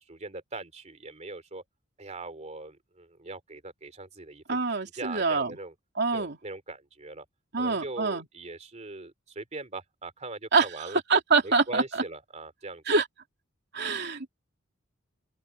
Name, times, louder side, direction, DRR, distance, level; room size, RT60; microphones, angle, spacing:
voice 1, 0.1-1.6 2.0-4.6 4.9-5.7 6.1-7.2 7.6-11.0 11.4-12.8, right 3 dB, 35° right, 3.0 m, -41 dB
voice 2, 4.5-5.5 6.0-6.4 7.5-8.3 10.5-10.7 11.1-12.0 12.9-13.1 13.7-14.3, right 4 dB, 55° right, 3.1 m, -25 dB
open air
head